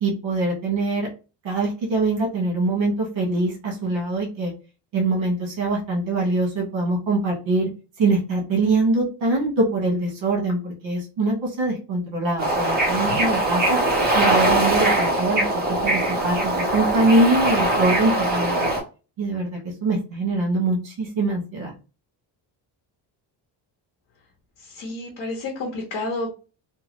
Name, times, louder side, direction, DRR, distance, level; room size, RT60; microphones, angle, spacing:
voice 1, 0.0-1.1 1.4-4.5 4.9-7.7 8.0-13.8 14.1-18.7 19.2-21.7, right 2 dB, 75° right, -1 dB, 1.2 m, -23 dB
Bird / Ocean, 12.4-18.8, right 1 dB, 20° right, 0.7 m, -21 dB
voice 2, 24.6-26.3, left 2 dB, 60° left, -1 dB, 1.0 m, -30 dB
2.9 x 2.3 x 3.0 m, 0.33 s
cardioid pair, 175°, 46 cm